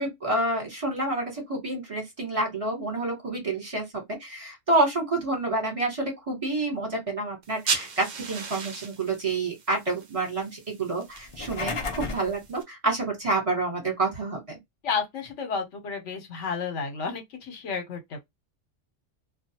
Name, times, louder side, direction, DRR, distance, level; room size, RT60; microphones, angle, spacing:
voice 1, 0.0-14.6, right 2 dB, 30° right, 1.1 m, -28 dB
sound 1, 7.4-12.6, right 5 dB, 50° right, 0.5 m, -36 dB
sound 2, 11.2-12.3, left 4 dB, 50° left, 0.3 m, -32 dB
voice 2, 14.8-18.2, left 5 dB, 70° left, 1.1 m, -31 dB
2.3 x 2.3 x 2.7 m
omnidirectional pair, 1.3 m